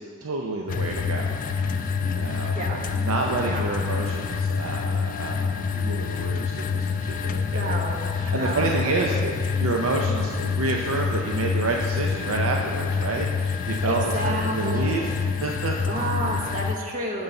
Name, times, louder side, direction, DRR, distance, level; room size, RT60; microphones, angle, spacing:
voice 1, 0.0-1.4 2.0-7.7 8.2-15.1 15.4-15.9, right 3 dB, 85° right, 0 dB, 0.6 m, -29 dB
sound 1, 0.7-16.8, left 5 dB, 40° left, 0.4 m, -27 dB
voice 2, 2.3-2.8 3.4-3.6 7.5-8.0 8.3-8.7 13.7-15.1 15.9-17.2, right 1 dB, 40° right, -1 dB, 1.2 m, -30 dB
9.4 x 4.0 x 6.9 m, 2.2 s
head